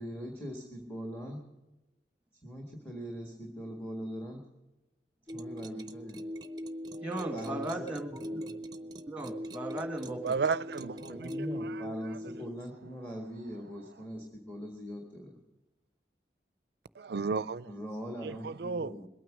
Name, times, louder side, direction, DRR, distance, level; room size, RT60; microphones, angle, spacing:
voice 1, 0.0-1.4 2.4-4.4 5.3-6.2 7.3-8.6 11.1-15.4 17.7-19.1, equal, 10° left, 1.7 m, -41 dB
sound 1, 5.3-12.5, equal, 25° right, 0.7 m, -41 dB
voice 2, 7.0-8.5 9.0-10.3, right 1 dB, 5° right, 1.8 m, -37 dB
voice 3, 10.2-12.4 17.0-17.7 18.2-19.0, right 5 dB, 70° right, 0.4 m, -34 dB
21.0 x 9.3 x 6.2 m
head